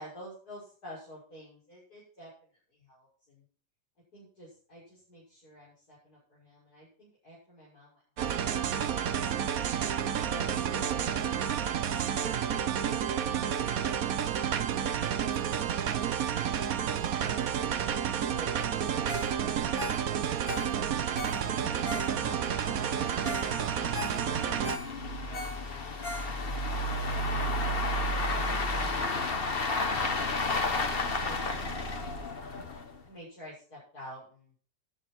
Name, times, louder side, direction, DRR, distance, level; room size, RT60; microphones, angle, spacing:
voice 1, 0.0-3.4 4.1-9.0 10.2-11.5 18.2-19.7 20.6-24.6 25.1-26.2 31.0-32.6 33.0-34.5, equal, 50° left, -7 dB, 6.8 m, -51 dB
sound 1, 8.2-24.8, right 8 dB, 55° right, 1.2 m, -30 dB
sound 2, 16.6-16.7 17.0-17.1 17.5-17.6 17.9-18.0 18.6-33.0, left 2 dB, 35° left, 1.3 m, -33 dB
Ringtone, 19.1-19.4 19.6-22.5 22.9-23.0 23.2-23.5 23.8-26.7 27.1-27.2, left 2 dB, 75° left, 3.0 m, -40 dB
16.5 x 10.0 x 4.5 m, 0.41 s
omnidirectional pair, 2.1 m